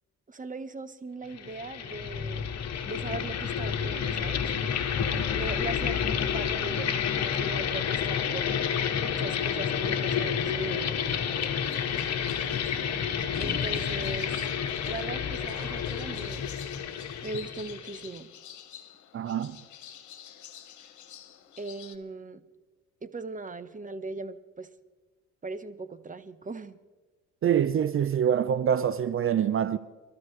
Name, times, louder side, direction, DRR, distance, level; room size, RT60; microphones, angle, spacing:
voice 1, 0.3-2.4 2.8-4.4 5.3-8.5 9.0-10.9 13.4-14.4 14.8-16.5 17.2-18.3 21.6-22.4 23.0-24.7 25.4-26.8, right 3 dB, 25° right, 1.0 m, -39 dB
sound 1, 1.3-18.0, left 8 dB, 60° left, 1.5 m, -30 dB
sound 2, 8.1-13.3, right 6 dB, 80° right, 2.5 m, -51 dB
sound 3, 11.6-22.0, left 9 dB, 75° left, 1.5 m, -48 dB
voice 2, 19.1-19.6 27.4-29.8, right 9 dB, 45° right, 0.6 m, -25 dB
27.5 x 13.0 x 3.3 m
cardioid pair, 90°, 30 cm